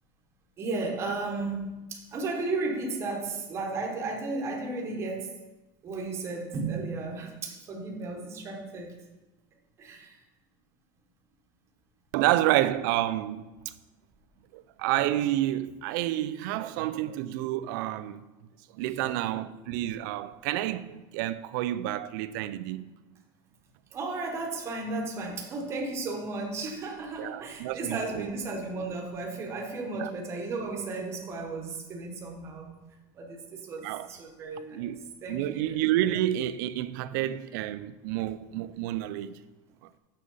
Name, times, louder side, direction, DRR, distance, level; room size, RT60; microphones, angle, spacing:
voice 1, 0.6-5.3 5.8-8.9 9.8-10.2 23.9-32.8 33.1-34.9 35.2-35.8, right 3 dB, 25° right, 1.0 m, -34 dB
voice 2, 12.1-13.4 14.5-18.2 18.7-22.8 27.2-28.3 30.0-30.1 33.8-34.1 34.7-39.4, right 14 dB, 60° right, 0.4 m, -29 dB
6.4 x 6.3 x 5.4 m
cardioid pair, 175°, 12 cm